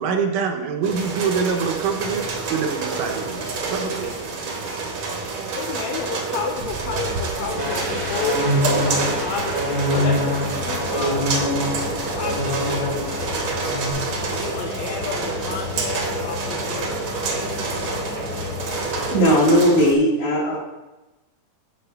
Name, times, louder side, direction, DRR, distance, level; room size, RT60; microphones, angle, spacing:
voice 1, 0.0-4.5, right 5 dB, 75° right, 4 dB, 2.3 m, -25 dB
sound 1, 0.8-19.9, right 4 dB, 60° right, 1.5 m, -28 dB
voice 2, 5.3-9.6 9.9-11.3 12.2-13.2 14.4-17.0, left 5 dB, 85° left, 3 dB, 1.5 m, -31 dB
sound 2, 7.3-19.2, left 3 dB, 55° left, 3.3 m, -32 dB
sound 3, 7.6-13.3 13.6-13.9, equal, 35° right, 1.0 m, -25 dB
voice 3, 19.1-20.6, equal, 70° left, -7 dB, 4.4 m, -17 dB
13.5 x 4.7 x 3.4 m, 1.0 s
omnidirectional pair, 3.8 m